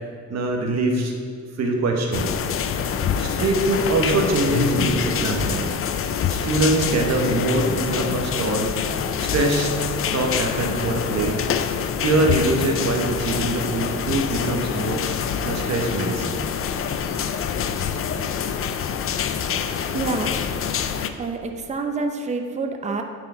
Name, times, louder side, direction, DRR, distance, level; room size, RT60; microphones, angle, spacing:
voice 1, 0.3-1.1 1.6-2.3 3.2-5.7 6.3-8.8 9.2-9.7 10.1-11.4 12.0-15.1 15.4-16.4 18.4-18.6 19.5-19.9 20.6-20.8, right 2 dB, 60° right, 2 dB, 1.2 m, -23 dB
sound 1, 2.1-21.1, left 7 dB, 45° left, 0.5 m, -25 dB
voice 2, 19.9-20.3 21.2-23.0, right 3 dB, 25° right, 5 dB, 0.6 m, -27 dB
9.1 x 4.9 x 3.8 m, 2.1 s
cardioid pair, 90°, 30 cm